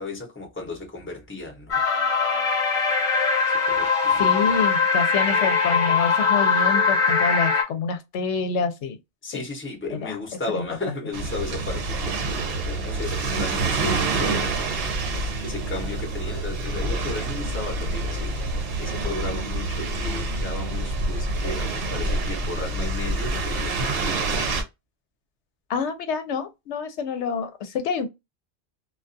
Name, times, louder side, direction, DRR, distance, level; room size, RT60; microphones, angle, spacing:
voice 1, 0.0-1.9 3.7-4.2 9.2-14.5 15.4-18.4 18.8-24.5, left 2 dB, 15° left, 0.7 m, -34 dB
sound 1, 1.7-7.6, left 5 dB, 45° left, 0.9 m, -21 dB
voice 2, 4.2-9.0 9.3-9.4 9.9-10.2 10.5-10.6 25.7-28.1, left 5 dB, 80° left, 0.9 m, -27 dB
sound 2, 11.1-24.6, right 2 dB, 60° right, 0.8 m, -27 dB
2.3 x 2.3 x 2.5 m
omnidirectional pair, 1.2 m